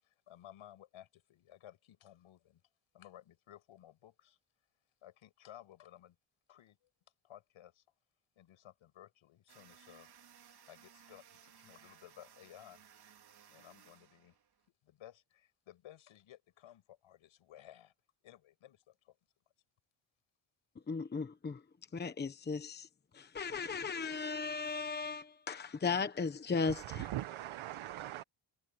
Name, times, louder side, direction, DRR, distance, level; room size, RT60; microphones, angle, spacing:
voice 1, 0.0-2.6 2.9-4.4 5.0-6.2 6.5-6.8 7.2-7.8 8.4-10.1 10.7-12.8 13.5-14.4 14.8-17.9 18.2-19.2, left 12 dB, 80° left, 6.4 m, -57 dB
sound 1, 9.5-14.7, right 8 dB, 50° right, 4.5 m, -61 dB
voice 2, 20.9-21.6 21.9-22.9 23.1-27.1, left 5 dB, 20° left, 1.1 m, -36 dB
voice 3, 26.7-28.2, right 14 dB, 80° right, 1.2 m, -41 dB
cardioid pair, 160°, 48 cm